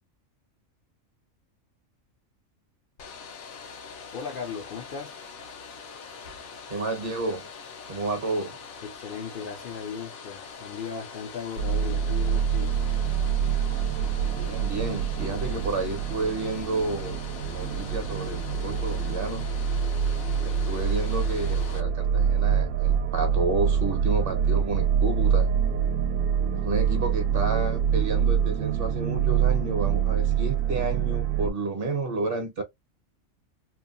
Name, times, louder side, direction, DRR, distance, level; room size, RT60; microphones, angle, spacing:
Domestic sounds home sounds, 3.0-21.8, left 5 dB, 90° left, 1.0 m, -43 dB
voice 1, 4.1-5.2 8.8-12.8, left 6 dB, 65° left, 0.5 m, -37 dB
voice 2, 6.7-7.5 7.9-8.6 14.3-19.5 20.4-25.5 26.5-32.6, right 2 dB, 50° right, 0.9 m, -31 dB
sound 1, 11.6-31.5, right 8 dB, 80° right, 1.0 m, -25 dB
2.9 x 2.1 x 2.4 m
omnidirectional pair, 1.4 m